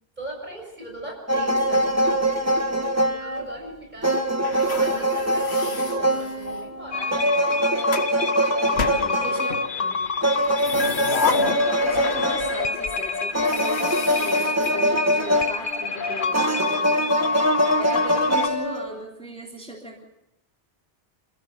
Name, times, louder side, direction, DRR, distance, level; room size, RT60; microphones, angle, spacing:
voice 1, 0.2-4.5 4.7-7.2 7.5-7.9 8.6-9.4 9.8-10.5, right 1 dB, 45° right, 1 dB, 6.8 m, -40 dB
sound 1, 1.3-3.7 4.0-9.7 10.2-12.8 13.3-16.0 16.3-18.9, right 1 dB, 15° right, 1.5 m, -23 dB
sound 2, 4.4-6.7 7.4-8.1 8.8-9.7 10.4-12.6 12.8-13.0 13.4-15.4, left 4 dB, 90° left, 1.7 m, -31 dB
sound 3, 6.9-18.5, left 4 dB, 55° left, 1.2 m, -28 dB
voice 2, 9.2-9.6 11.2-17.1 17.8-20.0, equal, 5° left, -1 dB, 3.3 m, -37 dB
28.0 x 16.5 x 6.7 m, 0.86 s
omnidirectional pair, 1.0 m